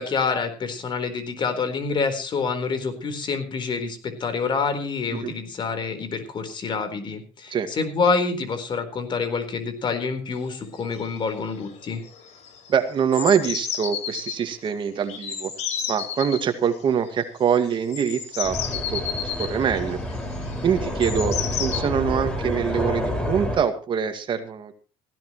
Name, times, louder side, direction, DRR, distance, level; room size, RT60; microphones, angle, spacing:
voice 1, 0.0-12.0, left 5 dB, 45° left, 8 dB, 4.2 m, -27 dB
sound 1, 10.5-10.6 10.8-11.2 11.5-11.8 12.1-14.4 15.1-16.4 17.5-21.8, left 8 dB, 75° left, 4.5 m, -32 dB
voice 2, 12.7-15.5 15.9-18.6 18.9-19.0 19.4-20.0 20.6-24.7, right 7 dB, 45° right, 8 dB, 2.0 m, -24 dB
sound 2, 18.4-23.6, equal, 10° left, 5.5 m, -28 dB
18.5 x 16.0 x 3.1 m, 0.37 s
cardioid pair, 115°, 11 cm